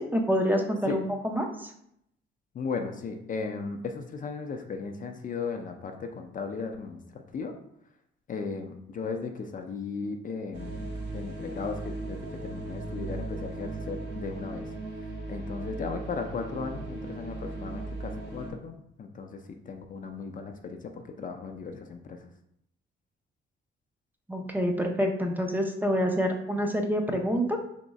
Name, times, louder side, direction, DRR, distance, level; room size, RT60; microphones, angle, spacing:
voice 1, 0.0-1.7 24.3-27.6, equal, 10° right, 2 dB, 0.6 m, -27 dB
voice 2, 2.5-7.5 8.3-14.7 15.0-22.2, left 4 dB, 40° left, 5 dB, 0.5 m, -36 dB
sound 1, 10.5-18.5, right 2 dB, 60° right, 1.5 m, -37 dB
3.6 x 3.0 x 4.0 m, 0.75 s
cardioid pair, 90°, 20 cm